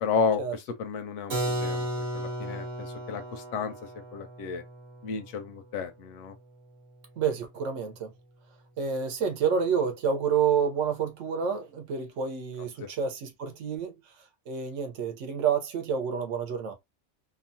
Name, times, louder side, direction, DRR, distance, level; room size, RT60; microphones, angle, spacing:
voice 1, 0.0-1.9 2.1-3.7 4.1-4.6 5.0-6.3 12.8-12.9, left 6 dB, 75° left, 0.9 m, -32 dB
Keyboard (musical), 1.3-6.9, right 1 dB, 45° right, 0.9 m, -35 dB
voice 2, 7.2-8.1 8.8-13.9 14.5-16.7, right 7 dB, 75° right, 1.1 m, -28 dB
2.9 x 2.1 x 2.6 m
omnidirectional pair, 1.3 m